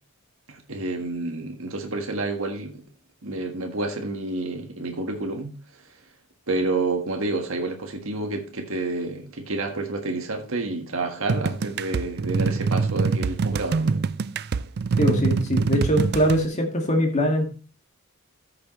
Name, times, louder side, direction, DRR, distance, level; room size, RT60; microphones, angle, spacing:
voice 1, 0.5-2.8 3.2-5.6 6.5-14.0, right 2 dB, 70° right, 1.6 m, -29 dB
sound 1, 11.3-16.4, right 4 dB, 50° right, 0.4 m, -24 dB
voice 2, 15.0-17.5, equal, 35° left, 2.0 m, -22 dB
14.0 x 6.7 x 3.1 m
head